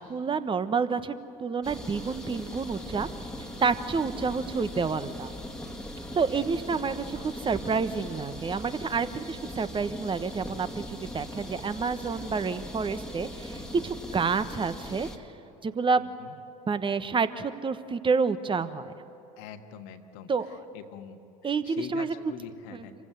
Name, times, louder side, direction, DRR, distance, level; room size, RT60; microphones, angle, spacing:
voice 1, 0.0-3.1 3.6-5.3 6.1-15.1 15.6-16.0 16.7-18.9 20.3-20.6 21.4-22.1 22.7-22.8, right 5 dB, 25° right, 12 dB, 1.2 m, -29 dB
sound 1, 1.6-15.2, equal, 5° left, 2.0 m, -40 dB
voice 2, 6.3-7.1 16.0-16.3 19.4-20.3 20.7-22.9, left 8 dB, 65° left, 6 dB, 1.6 m, -44 dB
26.5 x 16.0 x 9.5 m, 3.0 s
hypercardioid pair, 75°, 20 cm